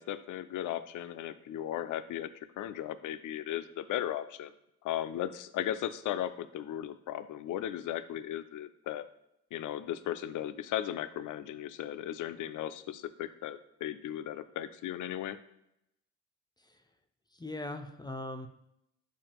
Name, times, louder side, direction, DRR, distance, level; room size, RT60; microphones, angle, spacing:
voice 1, 0.0-4.5 4.8-9.1 9.5-15.4, left 11 dB, 65° left, 12 dB, 0.4 m, -36 dB
voice 2, 17.3-18.5, left 2 dB, 10° left, 6 dB, 0.5 m, -40 dB
6.9 x 2.4 x 3.0 m, 0.82 s
supercardioid pair, 55°, 34 cm